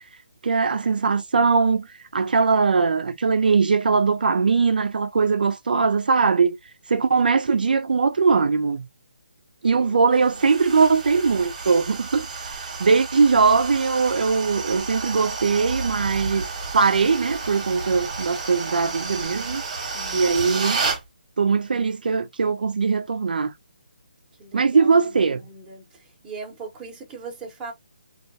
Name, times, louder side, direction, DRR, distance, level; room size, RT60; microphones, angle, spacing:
voice 1, 0.4-1.9 2.1-6.6 6.9-8.8 9.6-16.5 16.7-19.6 20.1-20.8 21.4-23.5 24.5-25.4, right 4 dB, 70° right, 0.3 m, -20 dB
sound 1, 10.2-21.0, right 4 dB, 45° right, 0.9 m, -31 dB
voice 2, 19.9-20.6 24.4-25.0 25.4-25.9 26.2-27.7, right 4 dB, 10° right, 0.7 m, -40 dB
2.3 x 2.1 x 2.6 m
hypercardioid pair, 160°, 5 cm